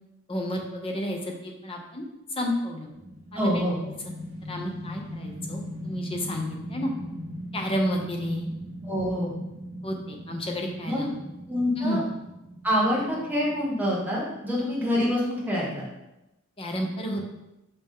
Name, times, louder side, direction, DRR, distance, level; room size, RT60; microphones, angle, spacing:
voice 1, 0.3-2.0 2.4-2.9 3.3-4.1 4.5-6.9 7.5-8.5 9.8-11.2 11.8-12.0 16.6-17.3, equal, 25° left, 1 dB, 0.9 m, -31 dB
sound 1, 2.9-15.1, equal, 70° right, 1.3 m, -40 dB
voice 2, 3.3-3.8 8.8-9.3 10.9-11.0 11.5-12.0 12.6-15.9, equal, 10° right, -5 dB, 1.3 m, -26 dB
6.0 x 5.5 x 3.7 m, 0.94 s
head